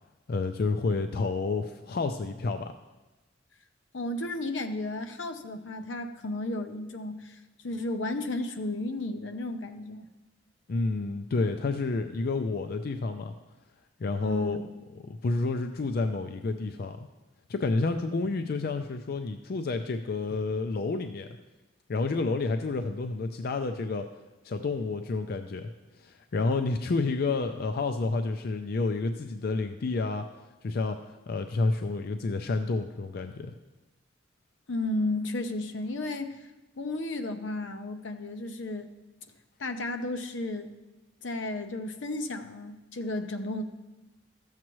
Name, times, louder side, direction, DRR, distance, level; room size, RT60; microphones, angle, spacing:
voice 1, 0.3-2.7 10.7-13.3 14.0-14.6 15.0-17.1 17.5-21.3 21.9-24.1 24.4-25.7 26.0-30.2 30.6-33.5, left 3 dB, 55° left, 7 dB, 0.4 m, -29 dB
voice 2, 3.9-10.1 14.2-14.6 34.7-36.5 36.8-38.9 39.6-40.7 41.2-43.6, left 2 dB, 85° left, 7 dB, 0.8 m, -33 dB
13.5 x 7.4 x 3.1 m, 1.1 s
head